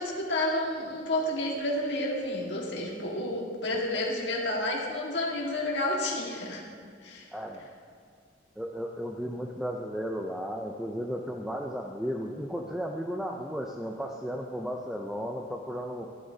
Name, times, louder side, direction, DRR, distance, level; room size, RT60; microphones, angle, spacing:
voice 1, 0.0-6.6 7.0-7.3, left 1 dB, 65° left, -2 dB, 1.6 m, -30 dB
voice 2, 7.3-7.7 8.6-16.1, equal, 5° right, 1 dB, 0.4 m, -34 dB
12.5 x 11.0 x 2.7 m, 2.2 s
head